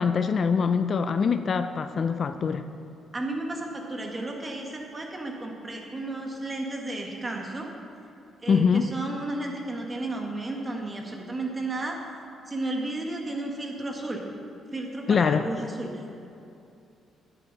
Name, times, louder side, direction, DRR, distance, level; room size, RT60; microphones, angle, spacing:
voice 1, 0.0-2.6 8.5-8.9 15.1-15.5, left 6 dB, 50° left, 10 dB, 0.4 m, -23 dB
voice 2, 3.1-7.7 8.4-12.0 12.5-14.2 14.7-16.3, right 2 dB, 25° right, 1 dB, 1.5 m, -33 dB
10.5 x 8.4 x 4.0 m, 2.7 s
cardioid pair, 90°, 0 cm